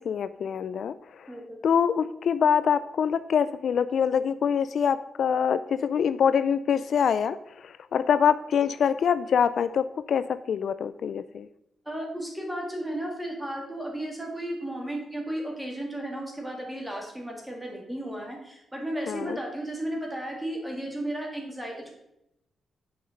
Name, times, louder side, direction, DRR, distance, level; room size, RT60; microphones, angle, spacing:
voice 1, 0.0-1.3 1.6-11.5 19.1-19.4, left 7 dB, 60° left, 14 dB, 0.3 m, -25 dB
voice 2, 11.9-21.9, right 1 dB, 5° right, -1 dB, 2.4 m, -34 dB
9.6 x 5.8 x 5.3 m, 0.84 s
wide cardioid pair, 145°, 0 cm